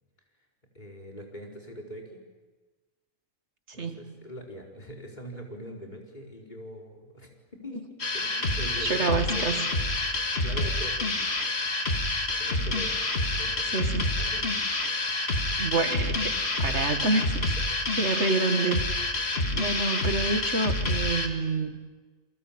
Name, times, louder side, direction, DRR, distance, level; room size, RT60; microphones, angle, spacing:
voice 1, 0.7-2.2 3.7-7.8 8.1-9.9 10.4-11.1 12.4-13.8 14.2-14.6 15.5-15.6 16.4-17.0, equal, 30° left, 0 dB, 5.0 m, -43 dB
voice 2, 3.7-4.1 8.8-9.7 13.7-14.1 15.6-16.3 16.6-17.5 18.0-19.0 19.5-21.8, right 3 dB, 55° right, 7 dB, 2.3 m, -28 dB
sound 1, 8.0-21.3, left 2 dB, 50° left, 2.5 m, -28 dB
28.5 x 23.5 x 8.9 m, 1.3 s
omnidirectional pair, 1.5 m